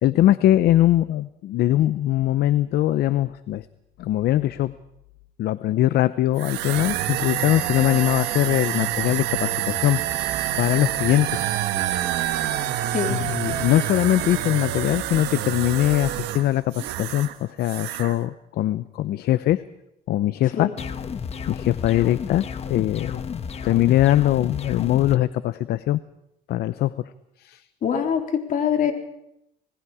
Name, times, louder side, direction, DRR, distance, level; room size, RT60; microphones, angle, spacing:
voice 1, 0.0-3.7 4.0-4.7 5.4-10.0 10.6-11.4 13.1-19.6 20.1-20.7 21.5-23.2 23.6-26.0 26.5-27.0 27.4-27.6, left 14 dB, 70° left, 14 dB, 0.7 m, -21 dB
sound 1, 6.4-17.4 17.6-18.1, right 13 dB, 90° right, 1.5 m, -27 dB
sound 2, 20.8-25.2, left 6 dB, 40° left, 1.3 m, -32 dB
voice 2, 27.8-28.9, left 8 dB, 55° left, 4 dB, 3.6 m, -23 dB
26.5 x 20.0 x 4.9 m, 0.83 s
cardioid pair, 110°, 17 cm